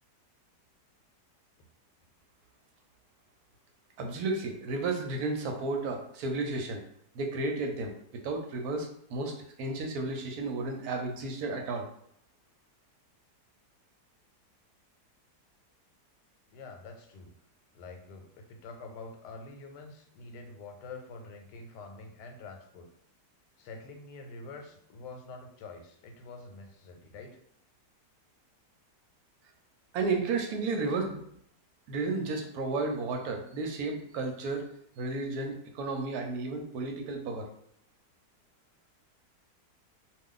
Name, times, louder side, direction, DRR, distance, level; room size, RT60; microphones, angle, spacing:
voice 1, 4.0-6.8 7.1-7.9 8.2-9.3 9.6-11.8 29.9-31.2 31.9-34.6 35.0-37.4, right 3 dB, 75° right, 3 dB, 1.0 m, -32 dB
voice 2, 16.5-17.3 17.7-22.9 23.6-27.4, left 3 dB, 85° left, 4 dB, 1.2 m, -46 dB
2.5 x 2.3 x 3.7 m, 0.69 s
omnidirectional pair, 1.8 m